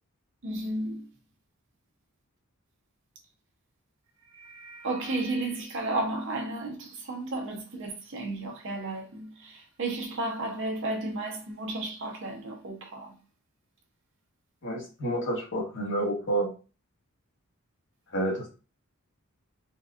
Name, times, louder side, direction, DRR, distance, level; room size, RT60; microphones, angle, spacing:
voice 1, 0.4-1.1 4.3-13.2, right 2 dB, 60° right, 0.8 m, -33 dB
voice 2, 14.6-16.5 18.1-18.5, right 1 dB, 60° left, 1.3 m, -29 dB
4.0 x 2.3 x 2.4 m
head